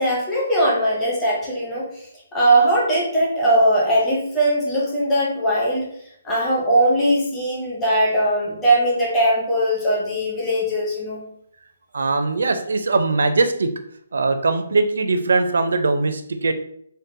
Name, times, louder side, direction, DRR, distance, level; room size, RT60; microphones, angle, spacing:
voice 1, 0.0-1.9 2.3-5.9 6.2-11.3, right 1 dB, 10° left, -6 dB, 0.6 m, -20 dB
voice 2, 11.9-13.7 14.1-16.5, right 3 dB, 70° right, 8 dB, 0.4 m, -20 dB
3.8 x 2.1 x 2.6 m, 0.69 s
hypercardioid pair, 175°, 0 cm